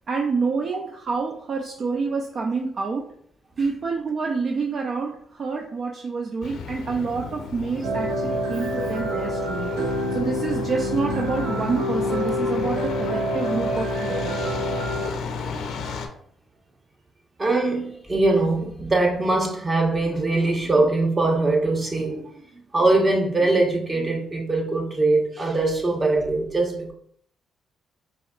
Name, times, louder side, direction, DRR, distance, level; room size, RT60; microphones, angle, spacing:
voice 1, 0.1-3.1 3.6-9.7 10.1-14.3, right 4 dB, 55° right, 1 dB, 0.5 m, -27 dB
Truck, 6.4-16.1, left 5 dB, 70° left, 0.5 m, -33 dB
sound 1, 7.8-15.1, equal, 80° right, 0.8 m, -27 dB
voice 2, 17.4-22.2 22.7-26.9, right 2 dB, 30° right, 0 dB, 1.2 m, -22 dB
4.8 x 3.0 x 2.4 m, 0.63 s
supercardioid pair, 55°, 0 cm